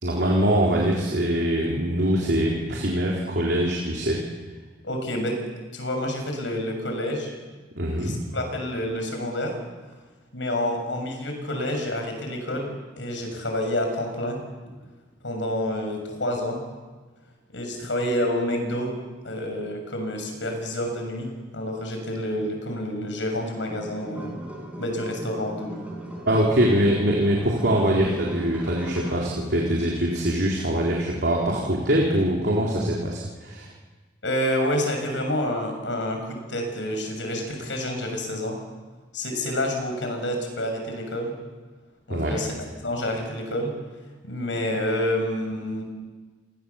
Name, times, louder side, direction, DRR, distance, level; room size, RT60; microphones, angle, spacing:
voice 1, 0.0-4.2 7.8-8.2 26.3-33.7 42.1-42.4, right 1 dB, 60° right, -2 dB, 3.9 m, -23 dB
voice 2, 4.8-5.4 5.7-7.3 8.0-9.6 10.3-14.4 15.2-16.6 17.5-18.9 19.2-24.4 24.8-25.9 34.2-38.6 39.1-41.4 42.1-42.5 42.8-43.7 44.2-45.8, left 1 dB, 85° left, 4 dB, 6.6 m, -28 dB
sound 1, 23.7-29.3, right 1 dB, 10° right, 5.3 m, -38 dB
29.5 x 21.5 x 7.2 m, 1.3 s
head